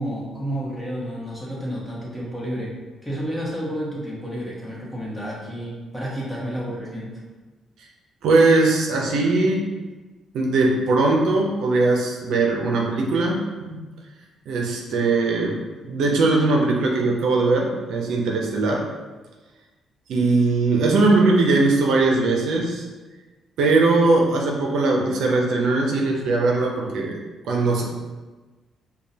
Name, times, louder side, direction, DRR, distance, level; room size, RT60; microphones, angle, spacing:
voice 1, 0.0-7.1, equal, 5° left, -6 dB, 1.4 m, -30 dB
voice 2, 8.2-9.8 10.3-13.8 14.5-18.8 20.1-22.8 23.6-27.1 27.5-27.8, right 3 dB, 80° right, 0 dB, 0.6 m, -20 dB
5.1 x 2.3 x 2.8 m, 1.3 s
cardioid pair, 90°, 0 cm